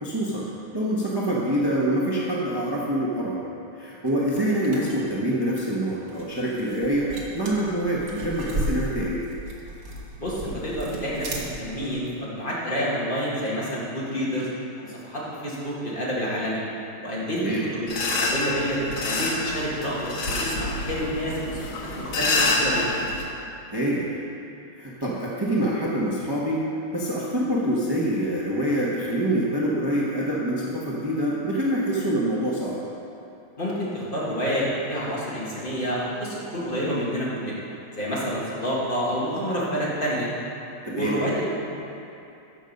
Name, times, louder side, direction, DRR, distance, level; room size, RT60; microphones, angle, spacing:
voice 1, 0.0-0.5 0.7-3.4 3.8-7.1 7.3-9.2 17.4-17.7 23.7-24.1 24.7-26.6 26.9-32.8 40.8-41.2, right 1 dB, 25° right, -6 dB, 0.6 m, -25 dB
sound 1, 4.1-11.8, right 1 dB, 45° right, 1.5 m, -35 dB
voice 2, 10.2-14.5 14.8-16.6 17.0-17.4 17.7-21.6 22.0-22.9 33.6-37.6 37.9-40.3 41.0-41.5, equal, 25° left, -7 dB, 1.8 m, -28 dB
sound 2, 17.9-23.2, left 2 dB, 85° left, 2.0 m, -27 dB
13.5 x 5.2 x 5.3 m, 2.7 s
omnidirectional pair, 2.4 m